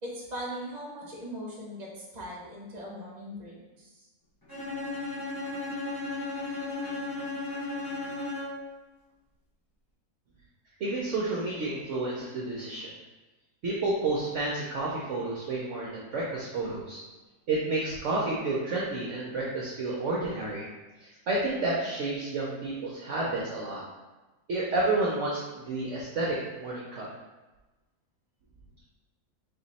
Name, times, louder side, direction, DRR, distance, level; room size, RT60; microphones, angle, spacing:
voice 1, 0.0-4.1, equal, 30° right, -4 dB, 1.0 m, -40 dB
Bowed string instrument, 4.5-8.7, left 2 dB, 15° left, 1.0 m, -35 dB
voice 2, 10.8-12.9 13.6-17.0 17.5-20.7 21.0-23.8 24.5-27.1, right 2 dB, 60° right, -5 dB, 0.9 m, -30 dB
3.7 x 3.0 x 4.1 m, 1.1 s
omnidirectional pair, 1.7 m